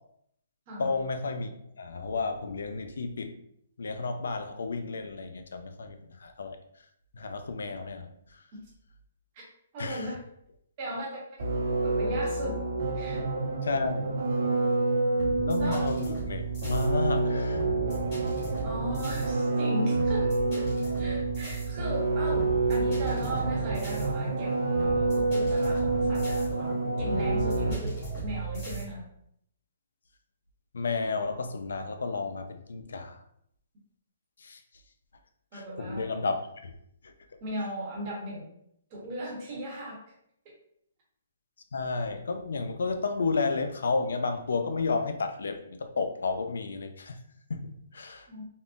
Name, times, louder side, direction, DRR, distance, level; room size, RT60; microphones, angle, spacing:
voice 1, 0.8-1.5 1.8-3.4 3.8-6.6 7.1-8.4 9.8-10.1 13.6-14.2 15.4-17.6 30.7-33.2 34.4-34.6 35.5-36.7 37.0-37.1 41.7-47.2 47.5-48.3, left 4 dB, 90° left, 7 dB, 0.4 m, -32 dB
voice 2, 9.7-10.2 10.8-11.4 11.8-12.6 12.9-13.2 15.6-15.9 18.6-20.3 20.5-20.7 21.0-29.0 35.5-36.1 37.4-38.4 38.9-40.0 48.3-48.4, right 1 dB, 25° right, -4 dB, 0.8 m, -37 dB
sound 1, 11.4-28.0, right 2 dB, 60° right, 1.0 m, -28 dB
sound 2, 15.2-28.8, right 4 dB, 30° left, 1.1 m, -36 dB
3.6 x 2.0 x 2.4 m, 0.72 s
hypercardioid pair, 175°, 0 cm